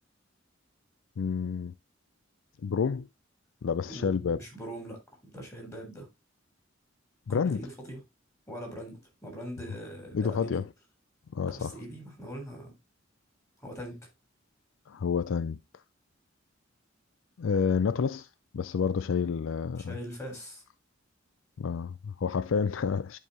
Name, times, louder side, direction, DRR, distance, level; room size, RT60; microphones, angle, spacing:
voice 1, 1.2-1.7 2.6-3.1 3.6-4.4 7.3-7.6 10.1-10.7 11.3-11.7 14.9-15.6 17.4-18.3 18.5-19.9 21.6-23.2, left 6 dB, 75° left, 0.4 m, -29 dB
voice 2, 3.9-6.1 7.3-8.0 8.5-10.6 11.5-12.7 13.6-14.1 19.9-20.6, right 1 dB, 15° left, 3.7 m, -42 dB
11.0 x 4.7 x 2.9 m
head